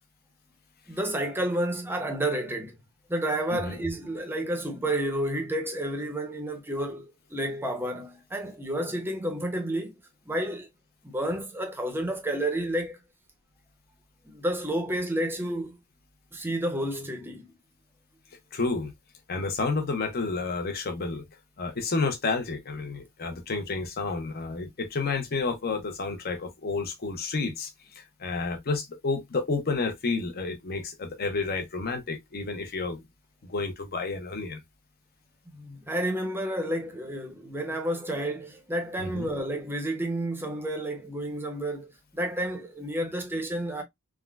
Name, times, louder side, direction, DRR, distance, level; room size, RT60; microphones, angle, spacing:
voice 1, 0.9-2.7 3.1-9.9 10.2-10.7 11.0-13.0 14.2-15.8 16.3-17.5 35.5-43.8, right 1 dB, 10° right, 0.6 m, -30 dB
voice 2, 18.5-18.9 19.3-21.3 21.6-33.0 33.5-34.6 39.0-39.3, left 3 dB, 45° left, 0.7 m, -30 dB
3.6 x 2.1 x 2.2 m
head